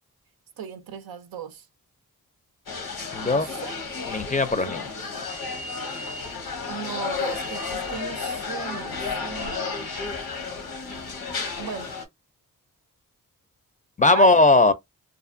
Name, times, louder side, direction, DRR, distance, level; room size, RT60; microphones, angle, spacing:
voice 1, 0.6-1.7 3.2-3.8 4.6-4.7 6.7-9.7 11.6-11.9 14.1-14.4, right 7 dB, 90° right, 0.5 m, -36 dB
sound 1, 2.7-12.0, left 4 dB, 90° left, 0.8 m, -32 dB
voice 2, 3.1-3.5 4.1-5.1 14.0-14.7, left 2 dB, 20° left, 0.4 m, -19 dB
2.5 x 2.4 x 2.4 m
cardioid pair, 60°, 35 cm